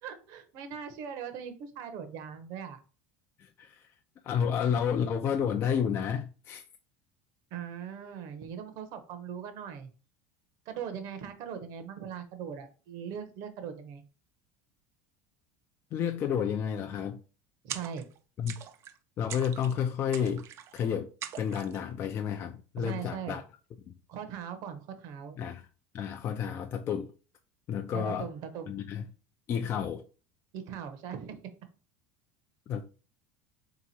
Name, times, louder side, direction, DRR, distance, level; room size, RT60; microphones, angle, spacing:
voice 1, 0.0-2.8 7.5-9.9 10.7-14.0 17.6-18.0 22.8-23.4 24.1-25.4 27.9-28.8 30.5-31.4, right 8 dB, 60° right, 0.8 m, -40 dB
voice 2, 3.4-3.9 4.2-6.6 15.9-17.2 18.4-18.6 19.2-20.4 20.7-21.1 21.4-23.4 25.4-25.7 25.9-27.1 27.7-28.3 28.7-29.0 29.5-30.0 32.7-32.8, left 8 dB, 35° left, 0.4 m, -30 dB
sound 1, 17.7-18.2 18.5-19.0 19.3-19.8 20.1-20.8 21.2-21.8, right 10 dB, 40° right, 0.4 m, -42 dB
3.5 x 2.9 x 4.1 m
supercardioid pair, 135°, 7 cm